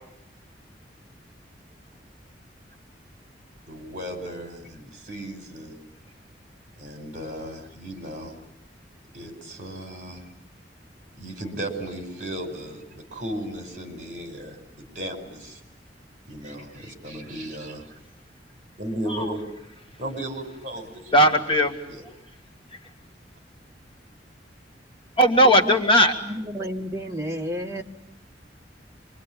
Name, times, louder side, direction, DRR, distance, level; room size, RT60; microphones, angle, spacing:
voice 1, 3.7-5.8 6.8-8.3 9.1-10.3 11.1-15.6 16.3-18.0 18.8-19.4 20.0-21.3 21.9-22.0, right 1 dB, 45° right, 6 dB, 5.5 m, -35 dB
voice 2, 21.1-21.8 25.2-26.1, equal, 30° left, 4 dB, 2.1 m, -17 dB
voice 3, 25.4-25.8 26.2-27.8, equal, 15° right, 1 dB, 1.9 m, -31 dB
26.5 x 23.5 x 9.1 m, 0.82 s
head